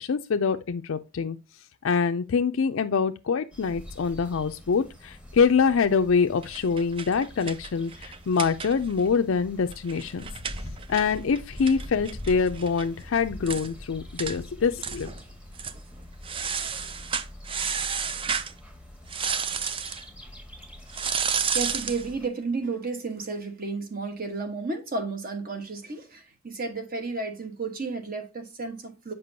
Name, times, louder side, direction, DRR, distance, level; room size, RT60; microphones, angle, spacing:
voice 1, 0.0-1.4 1.8-10.2 10.9-15.1, left 5 dB, 75° left, 0.4 m, -25 dB
sound 1, 3.5-22.3, left 1 dB, 5° right, 1.0 m, -44 dB
sound 2, 6.4-9.1 9.4-9.5 9.7-12.9 13.2-13.3 13.5-13.7 14.2-14.4 14.8-15.2 15.5-15.8 16.2-18.5 19.1-20.0 20.9-22.1, right 6 dB, 25° right, 0.4 m, -31 dB
voice 2, 21.2-29.1, right 3 dB, 45° right, 1.2 m, -32 dB
6.8 x 5.4 x 2.7 m
head